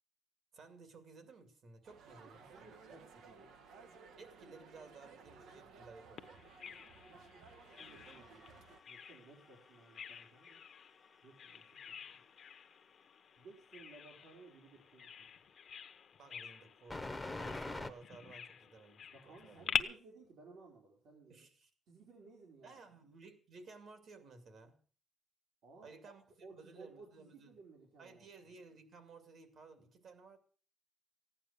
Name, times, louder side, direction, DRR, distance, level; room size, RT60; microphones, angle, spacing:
voice 1, 0.5-2.8 4.2-6.5 16.2-19.7 21.3-21.7 22.6-24.8 25.8-27.5 28.0-30.4, right 4 dB, 55° right, 2.4 m, -57 dB
sound 1, 1.8-8.8, right 4 dB, 90° right, 1.6 m, -58 dB
voice 2, 2.4-3.9 7.8-10.6 11.2-12.2 13.4-15.3 19.1-21.5 21.9-22.8 25.6-26.1 26.4-28.3, right 3 dB, 70° right, 3.8 m, -58 dB
Bird vocalization bird call bird song, 6.2-19.8, left 8 dB, 45° left, 0.9 m, -46 dB
sound 2, 7.8-10.5 10.8-11.9 16.9-17.9, left 2 dB, 5° left, 0.9 m, -44 dB
15.5 x 9.9 x 6.8 m
cardioid pair, 165°, 0 cm